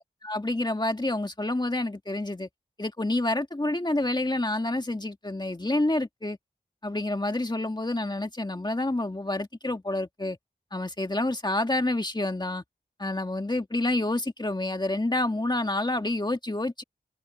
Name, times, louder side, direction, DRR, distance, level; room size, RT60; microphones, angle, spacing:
voice 1, 0.0-2.5 2.8-6.4 6.8-10.4 10.7-12.6 13.0-16.8, left 2 dB, 25° left, 2.1 m, -28 dB
open air
wide cardioid pair, 55°, 17 cm